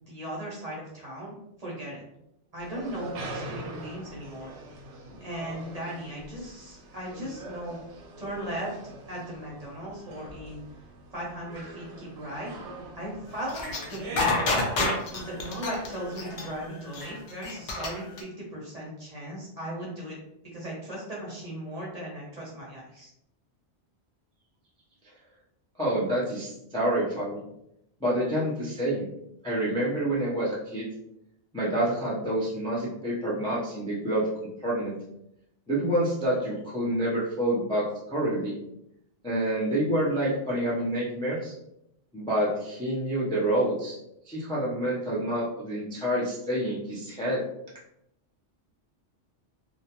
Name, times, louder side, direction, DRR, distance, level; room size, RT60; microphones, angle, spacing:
voice 1, 0.0-1.3 1.6-2.0 2.5-4.5 5.1-7.8 8.2-8.8 9.1-10.6 11.1-12.5 12.9-14.7 15.1-20.2 20.4-23.1, right 1 dB, 40° right, -5 dB, 0.7 m, -37 dB
sound 1, 2.6-16.7, right 2 dB, 85° right, 0.9 m, -43 dB
sound 2, 13.5-18.2, left 3 dB, 55° left, 0.5 m, -28 dB
voice 2, 25.8-27.4 28.0-29.1 29.4-30.9 31.5-34.3 34.6-34.9 35.7-38.5 39.2-41.5 42.1-44.0 44.3-47.4, right 1 dB, 5° left, -6 dB, 0.4 m, -27 dB
2.3 x 2.1 x 2.9 m, 0.80 s
omnidirectional pair, 1.2 m